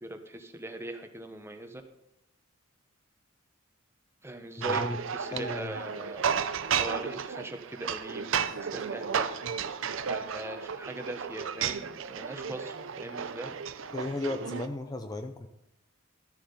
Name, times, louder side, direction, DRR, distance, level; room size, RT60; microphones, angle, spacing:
voice 1, 0.0-1.8 4.2-6.2 6.8-9.3 10.1-13.5, right 1 dB, 10° right, 6 dB, 1.0 m, -40 dB
sound 1, 4.6-14.7, right 7 dB, 65° right, 0.6 m, -33 dB
voice 2, 4.7-5.0 5.3-5.8 8.5-8.6 13.9-15.5, left 2 dB, 20° left, 6 dB, 0.5 m, -35 dB
13.0 x 7.1 x 5.6 m, 0.85 s
head